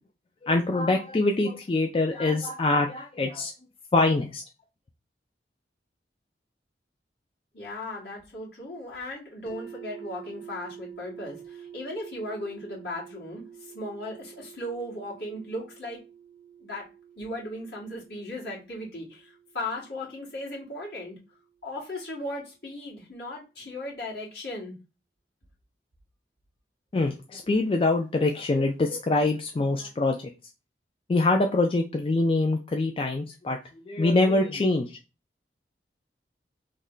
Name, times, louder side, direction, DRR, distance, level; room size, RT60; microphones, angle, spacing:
voice 1, 0.4-3.5 3.9-4.4 26.9-30.2 31.1-33.6 33.9-34.9, left 2 dB, 30° left, 3 dB, 0.3 m, -24 dB
voice 2, 7.5-16.0 16.6-16.9 17.2-21.1 21.6-24.8, left 1 dB, 65° left, -5 dB, 1.8 m, -37 dB
sound 1, 9.5-21.4, right 8 dB, 5° left, 0.7 m, -48 dB
3.2 x 2.2 x 3.7 m, 0.29 s
head